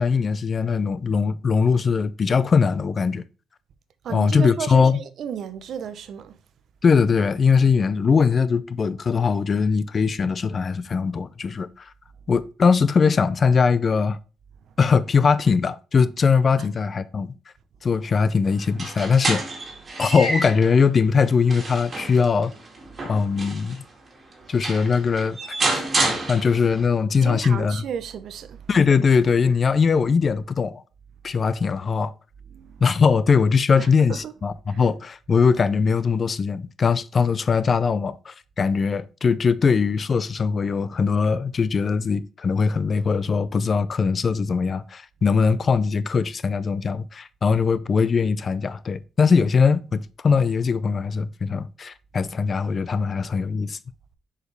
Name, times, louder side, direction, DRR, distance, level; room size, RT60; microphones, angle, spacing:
voice 1, 0.0-3.2 4.1-5.0 6.8-11.7 12.3-14.2 14.8-17.3 17.8-19.4 20.0-22.5 23.1-23.8 24.5-25.4 25.7-25.8 26.3-27.8 28.7-30.8 31.2-32.1 32.8-53.8, left 5 dB, 40° left, 0.5 m, -21 dB
voice 2, 4.0-6.4 16.6-16.7 27.2-28.7 32.5-32.8 33.8-34.3 34.7-34.8, right 8 dB, 65° right, 0.7 m, -33 dB
sound 1, 18.6-20.7 21.2-23.8 24.3-24.4 24.6-26.8, right 2 dB, 35° right, 2.3 m, -28 dB
6.4 x 5.0 x 3.3 m
cardioid pair, 90°, 0 cm